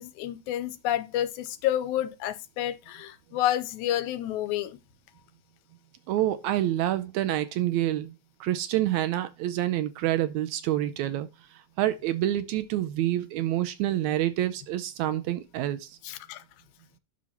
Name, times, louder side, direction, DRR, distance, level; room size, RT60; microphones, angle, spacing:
voice 1, 0.0-4.8 16.0-16.4, left 12 dB, 80° left, 1.9 m, -29 dB
voice 2, 6.1-8.1 8.4-11.3 11.8-15.9, right 13 dB, 80° right, 1.7 m, -27 dB
9.9 x 6.2 x 2.8 m
omnidirectional pair, 3.5 m